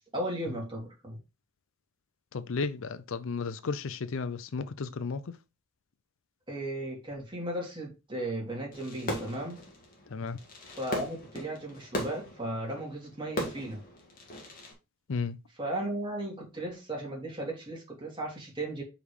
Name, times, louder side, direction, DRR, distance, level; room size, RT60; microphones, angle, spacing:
voice 1, 0.1-1.2 6.5-9.6 10.8-13.8 15.6-18.8, right 1 dB, 25° right, 3.0 m, -35 dB
voice 2, 2.3-5.4 10.1-10.4 15.1-15.4, left 4 dB, 65° left, 0.5 m, -33 dB
Fireworks, 8.7-14.7, equal, 40° left, 2.1 m, -39 dB
5.1 x 5.1 x 4.9 m
head